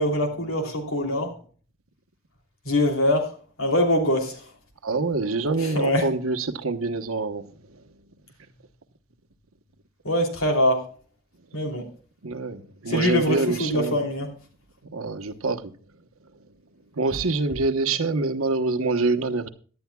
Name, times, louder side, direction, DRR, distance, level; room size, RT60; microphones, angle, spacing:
voice 1, 0.0-1.3 2.6-3.3 3.6-4.4 5.6-6.1 10.0-10.8 11.5-11.8 12.9-14.3, left 1 dB, 80° left, 3.1 m, -23 dB
voice 2, 4.8-7.5 12.2-14.0 14.9-15.7 17.0-19.5, right 3 dB, 90° right, 1.1 m, -26 dB
17.5 x 11.5 x 2.3 m
head